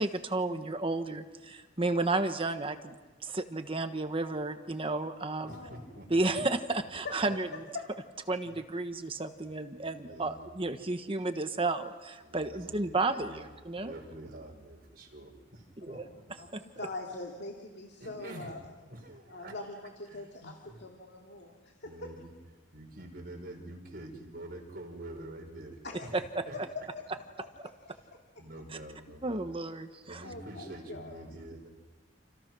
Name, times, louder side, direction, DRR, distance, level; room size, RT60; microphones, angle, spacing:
voice 1, 0.0-2.9 3.2-5.5 6.1-7.5 8.3-13.9 15.9-16.0 29.2-30.2, right 2 dB, 30° right, 8 dB, 1.3 m, -32 dB
voice 2, 5.4-6.6 8.4-8.5 10.0-10.4 12.2-13.4 13.7-16.3 18.0-18.6 18.8-19.6 20.1-20.3 20.6-20.8 21.8-22.3 22.7-26.1 26.5-26.6 27.9-28.1 28.4-29.5 30.1-31.7, right 1 dB, 50° right, 1 dB, 5.7 m, -47 dB
voice 3, 7.5-7.9 15.9-18.6 19.3-22.1 25.8-26.1 26.5-26.8 27.6-28.0 30.2-31.2, left 3 dB, 60° left, 0 dB, 2.5 m, -43 dB
29.0 x 28.5 x 6.2 m, 1.3 s
head